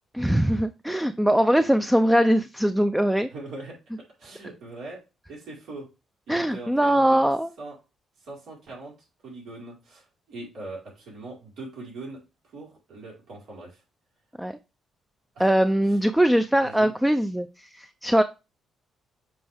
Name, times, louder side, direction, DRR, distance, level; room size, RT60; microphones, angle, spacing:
voice 1, 0.1-3.3 6.3-7.5 14.4-14.5 15.4-18.2, right 1 dB, 5° right, 0.5 m, -21 dB
voice 2, 3.3-5.0 5.3-5.9 6.3-7.3 7.6-7.8 8.2-8.9 9.2-13.8 15.3-15.5 15.8-16.0 16.6-16.9, right 2 dB, 75° right, 4.6 m, -41 dB
7.8 x 4.5 x 3.5 m
cardioid pair, 90°, 0 cm